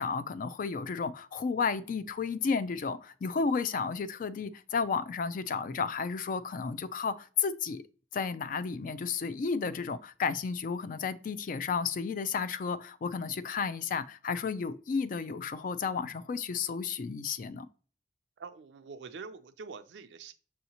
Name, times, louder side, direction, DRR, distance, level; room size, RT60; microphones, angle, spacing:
voice 1, 0.0-7.8 8.1-17.7, left 5 dB, 50° left, 0.3 m, -32 dB
voice 2, 18.4-20.3, right 5 dB, 85° right, 0.4 m, -45 dB
6.4 x 2.8 x 2.8 m
head